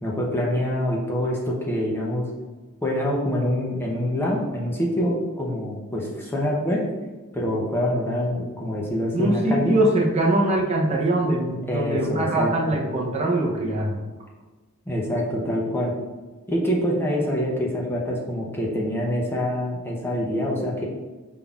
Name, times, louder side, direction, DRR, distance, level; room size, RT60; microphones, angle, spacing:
voice 1, 0.0-2.3 2.8-6.9 7.3-9.8 11.7-12.8 14.9-15.9 16.5-20.9, equal, 10° left, -3 dB, 0.6 m, -25 dB
voice 2, 9.1-14.0, right 1 dB, 30° right, -1 dB, 0.6 m, -22 dB
5.2 x 3.7 x 2.3 m, 1.3 s
head